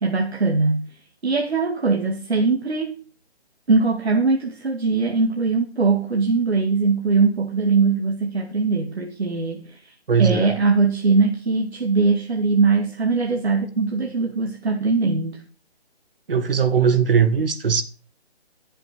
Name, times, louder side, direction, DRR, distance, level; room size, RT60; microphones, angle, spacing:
voice 1, 0.0-0.9 1.2-3.0 3.7-9.8 10.2-15.4, right 4 dB, 75° right, 2.6 m, -21 dB
voice 2, 10.1-10.6 16.3-17.8, right 7 dB, 60° right, 1.9 m, -19 dB
13.0 x 7.6 x 6.2 m
hypercardioid pair, 170°, 32 cm